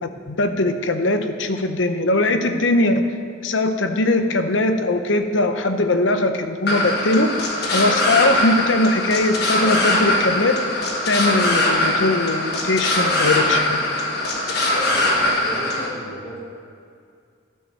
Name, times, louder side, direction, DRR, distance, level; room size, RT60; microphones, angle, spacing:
voice 1, 0.0-3.1 3.4-7.3 7.7-10.6 11.1-13.8, left 2 dB, 70° left, 7 dB, 0.8 m, -20 dB
sound 1, 6.7-15.9, left 1 dB, 55° left, 1.6 m, -21 dB
voice 2, 14.8-16.4, equal, 20° left, -5 dB, 2.9 m, -35 dB
13.0 x 5.5 x 6.7 m, 2.3 s
head